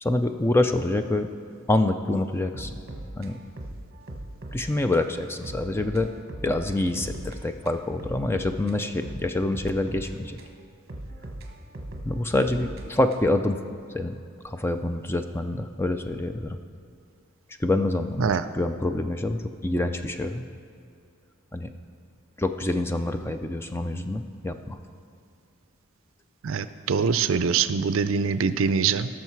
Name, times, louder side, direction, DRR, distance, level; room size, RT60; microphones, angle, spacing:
voice 1, 0.0-1.3 1.7-2.7 3.2-3.4 4.5-6.1 6.4-10.4 12.0-13.6 13.9-14.2 14.4-16.6 17.6-20.4 21.5-21.7 22.4-24.8, left 2 dB, 10° left, 8 dB, 0.4 m, -26 dB
sound 1, 2.5-4.7 4.9-5.1 5.4-7.4 7.7-10.5 10.9-13.4, right 1 dB, 45° right, 1.2 m, -39 dB
voice 2, 26.4-29.1, right 6 dB, 65° right, 12 dB, 0.4 m, -24 dB
18.5 x 6.3 x 4.6 m, 2.4 s
head